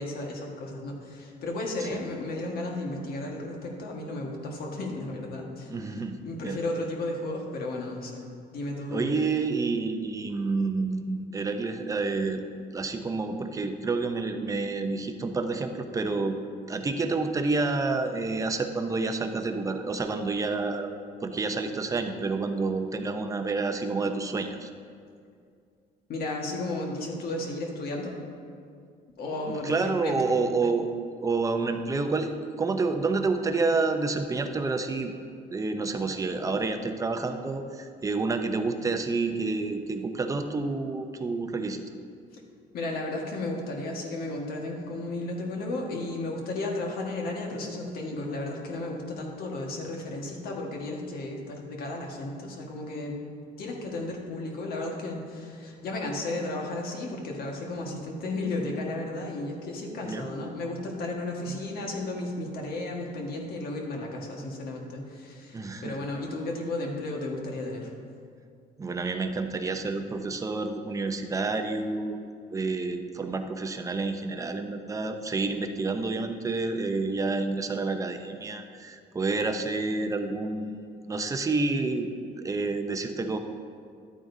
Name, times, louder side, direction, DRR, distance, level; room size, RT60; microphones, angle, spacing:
voice 1, 0.0-5.7 6.2-8.3 8.5-9.2 26.1-28.1 29.2-30.3 42.3-42.4 42.7-53.2 53.6-67.9, left 2 dB, 65° left, 0 dB, 1.6 m, -34 dB
voice 2, 5.7-6.2 6.4-6.6 8.9-12.4 12.7-16.4 16.7-20.9 21.2-24.7 29.4-35.1 35.5-41.8 57.7-57.8 60.0-60.3 61.5-61.6 65.5-66.0 68.8-82.1 82.4-83.4, right 3 dB, 20° right, 6 dB, 0.7 m, -29 dB
11.5 x 8.8 x 2.7 m, 2.3 s
cardioid pair, 110°, 17 cm